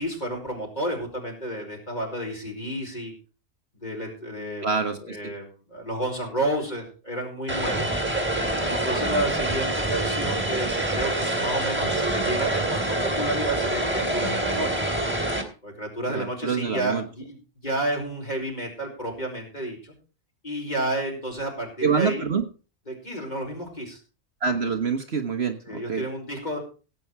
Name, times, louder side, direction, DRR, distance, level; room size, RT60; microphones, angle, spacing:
voice 1, 0.0-3.1 3.8-8.0 8.6-14.9 15.6-17.4 17.6-19.9 20.4-22.2 22.9-24.0 25.6-26.6, right 1 dB, 30° left, 0 dB, 5.2 m, -31 dB
voice 2, 4.6-5.3 16.1-17.0 21.8-22.4 24.4-25.6 25.9-26.0, right 5 dB, 50° right, 6 dB, 1.5 m, -26 dB
Vehicle, 7.5-15.4, right 1 dB, 10° right, 2.6 m, -26 dB
17.0 x 8.6 x 4.7 m, 0.35 s
omnidirectional pair, 1.4 m